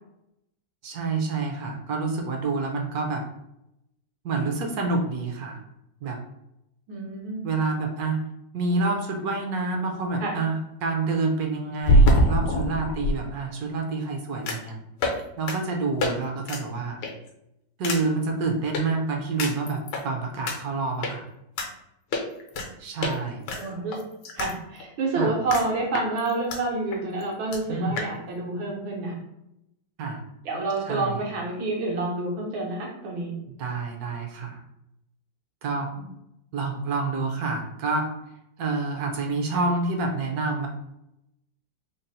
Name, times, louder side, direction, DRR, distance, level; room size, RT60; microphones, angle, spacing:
voice 1, 0.8-3.2 4.2-5.6 6.0-6.2 7.4-8.2 8.5-14.8 15.4-17.0 17.8-21.3 22.8-23.4 25.1-25.4 27.7-28.0 30.0-30.2 30.9-31.2 33.6-34.6 35.6-35.9 36.5-38.1 38.6-40.7, right 3 dB, 65° right, 2 dB, 1.0 m, -28 dB
voice 2, 6.9-7.4 10.2-10.4 23.6-24.0 24.4-29.2 30.4-33.3 36.0-36.1 39.5-39.6, right 2 dB, 90° right, -2 dB, 1.9 m, -28 dB
sound 1, 11.8-13.1 14.5-14.7 15.0-15.2 15.5-15.6 16.0-16.1 16.5-16.6 17.0-17.3 17.8-18.0 18.7-18.8 19.4-20.0 20.5-20.6 21.0-21.1 21.6-21.7 22.1-22.7 23.0-23.2 23.5-24.5 24.8-24.9 25.5-25.7 25.9-26.6 26.9-27.0 27.2-27.3 27.5-27.6 28.0-28.1, equal, 70° left, 1.2 m, -23 dB
3.9 x 2.0 x 3.9 m, 0.84 s
omnidirectional pair, 2.1 m